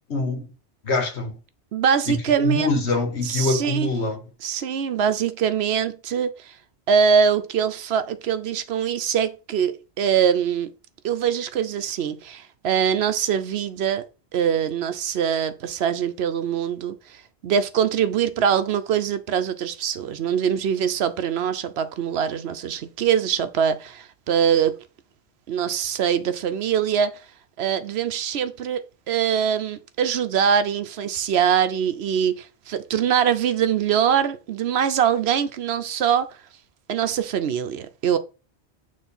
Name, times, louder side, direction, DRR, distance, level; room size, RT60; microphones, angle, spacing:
voice 1, 0.1-0.5 0.8-1.4 2.1-4.2, left 2 dB, 75° left, 1.6 m, -24 dB
voice 2, 1.7-2.7 3.2-3.9 4.4-6.5 6.9-10.7 11.0-14.0 14.3-17.2 17.4-24.8 25.5-27.1 27.6-28.8 29.1-36.4 36.9-38.2, right 8 dB, 70° right, 0.9 m, -23 dB
6.6 x 3.2 x 5.4 m
omnidirectional pair, 1.1 m